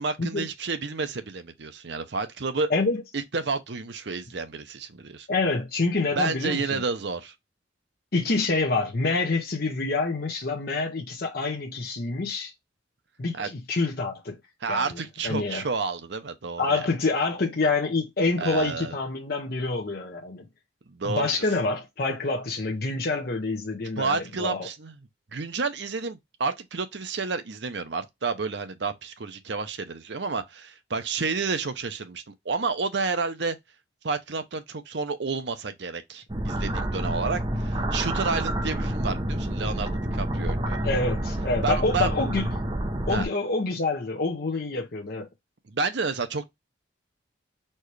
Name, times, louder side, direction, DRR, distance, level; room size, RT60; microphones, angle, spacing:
voice 1, 0.0-2.7 3.1-5.3 6.2-7.3 13.3-13.5 14.6-16.9 18.4-18.9 20.9-21.4 24.0-25.0 25.3-33.6 34.0-40.8 41.6-42.1 43.1-43.3 45.7-46.5, right 4 dB, 60° right, 0.7 m, -30 dB
voice 2, 2.7-3.0 5.3-6.8 8.1-12.5 13.2-14.4 14.7-15.7 16.6-20.5 21.0-24.7 40.8-42.5 43.1-45.3, left 3 dB, 50° left, 0.7 m, -27 dB
sound 1, 36.3-43.2, right 1 dB, 25° right, 0.7 m, -28 dB
4.4 x 3.2 x 3.1 m
head